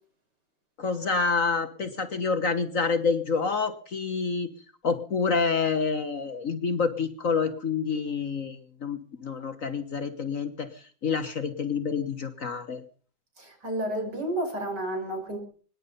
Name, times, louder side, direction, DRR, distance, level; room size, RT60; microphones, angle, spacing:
voice 1, 0.8-4.5 4.8-12.8, left 5 dB, 50° left, 8 dB, 1.5 m, -28 dB
voice 2, 13.4-15.4, right 1 dB, 60° right, 4 dB, 6.2 m, -31 dB
24.5 x 11.0 x 5.4 m, 0.43 s
omnidirectional pair, 2.0 m